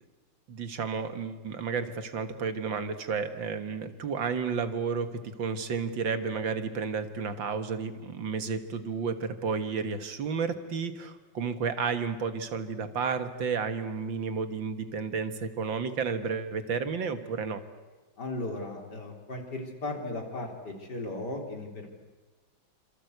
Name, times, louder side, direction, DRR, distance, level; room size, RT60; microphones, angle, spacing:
voice 1, 0.5-17.6, right 5 dB, 80° right, 9 dB, 2.3 m, -32 dB
voice 2, 18.2-21.9, left 2 dB, 60° left, 2 dB, 4.4 m, -36 dB
27.5 x 26.5 x 8.1 m, 1.2 s
omnidirectional pair, 2.1 m